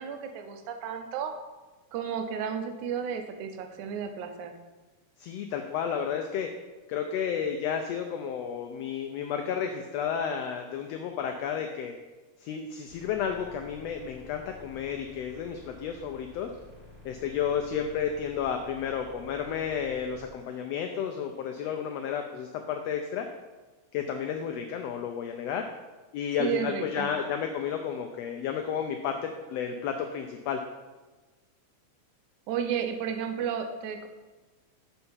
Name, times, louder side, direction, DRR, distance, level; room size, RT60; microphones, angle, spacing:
voice 1, 0.0-1.3 1.9-4.5 26.4-27.1 32.5-34.1, right 8 dB, 85° right, 6 dB, 2.1 m, -32 dB
voice 2, 5.2-6.5 6.9-11.9 12.4-16.5 17.0-23.3 23.9-25.6 26.1-30.6, left 7 dB, 90° left, 4 dB, 1.4 m, -32 dB
whistling sound, 12.9-20.3, left 2 dB, 25° left, 1.5 m, -51 dB
7.0 x 4.3 x 5.5 m, 1.2 s
omnidirectional pair, 3.4 m